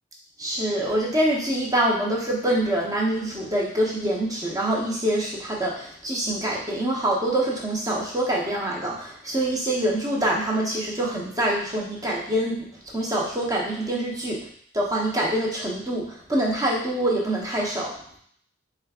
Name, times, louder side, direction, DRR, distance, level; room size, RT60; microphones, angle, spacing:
voice 1, 0.4-12.6 12.9-14.4 14.7-17.9, right 1 dB, 20° right, -3 dB, 0.8 m, -25 dB
3.8 x 2.4 x 3.5 m, 0.62 s
head